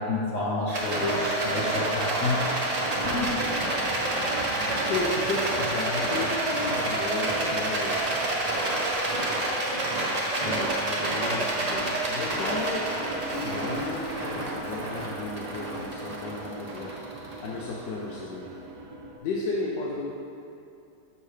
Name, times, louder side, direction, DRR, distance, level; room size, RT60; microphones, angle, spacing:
voice 1, 0.0-2.5 3.0-3.3, left 2 dB, 60° left, -5 dB, 1.0 m, -29 dB
Rattle, 0.7-18.0, right 1 dB, 35° right, 0.6 m, -28 dB
sound 1, 1.1-19.2, right 3 dB, 70° right, 1.0 m, -43 dB
voice 2, 4.5-8.0 10.4-13.0 13.3-18.5 19.2-20.1, left 3 dB, 85° left, -4 dB, 1.3 m, -34 dB
6.7 x 5.4 x 3.3 m, 2.7 s
omnidirectional pair, 1.8 m